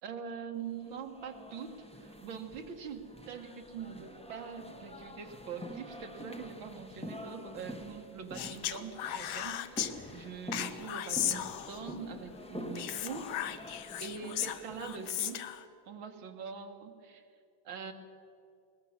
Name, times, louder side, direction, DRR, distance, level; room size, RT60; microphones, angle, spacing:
voice 1, 0.0-13.4 14.0-15.5 15.9-17.2 17.7-17.9, right 6 dB, 75° right, 6 dB, 2.2 m, -43 dB
sound 1, 0.8-15.5, equal, 5° left, 0.8 m, -47 dB
Speech, 8.3-9.9 10.5-11.9 12.7-15.6, left 11 dB, 85° left, 1.6 m, -36 dB
20.5 x 20.0 x 7.3 m, 2.8 s
omnidirectional pair, 2.1 m